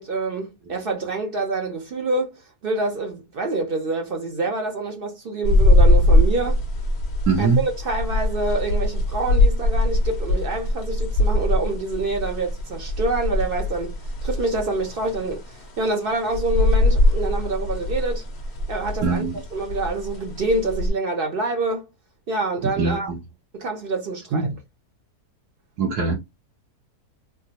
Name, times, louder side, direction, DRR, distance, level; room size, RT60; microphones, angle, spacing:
voice 1, 0.0-6.6 7.4-18.2 18.7-19.3 19.5-21.9 22.3-23.1 23.5-24.5, right 2 dB, 60° right, 0.6 m, -26 dB
sound 1, 5.4-20.9, left 1 dB, 45° left, 1.0 m, -21 dB
voice 2, 7.3-7.6 19.0-19.4 22.8-23.2 24.3-24.5 25.8-26.2, right 4 dB, 75° right, 1.3 m, -22 dB
3.6 x 2.0 x 2.7 m
omnidirectional pair, 1.7 m